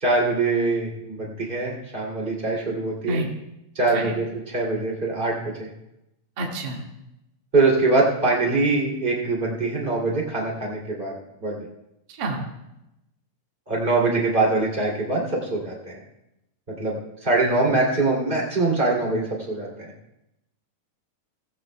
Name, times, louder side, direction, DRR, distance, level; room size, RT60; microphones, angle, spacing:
voice 1, 0.0-3.2 3.7-5.7 7.5-11.2 11.4-11.6 13.7-16.0 16.8-19.9, right 3 dB, 15° right, -3 dB, 2.5 m, -23 dB
voice 2, 6.4-6.8 12.2-12.4, right 2 dB, 40° right, -2 dB, 2.2 m, -28 dB
18.5 x 15.5 x 2.3 m, 0.89 s
omnidirectional pair, 4.1 m